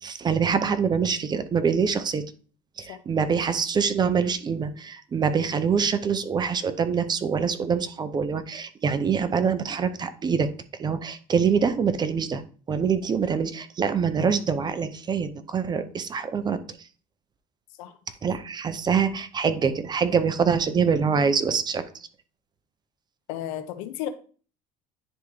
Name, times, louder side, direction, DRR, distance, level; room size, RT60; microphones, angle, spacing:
voice 1, 0.0-2.2 2.8-10.5 10.8-12.4 12.7-16.6 18.2-21.8, right 6 dB, 25° right, 12 dB, 0.6 m, -25 dB
voice 2, 23.3-24.1, left 11 dB, 85° left, 10 dB, 0.8 m, -33 dB
10.0 x 3.6 x 3.1 m, 0.40 s
cardioid pair, 120°, 16 cm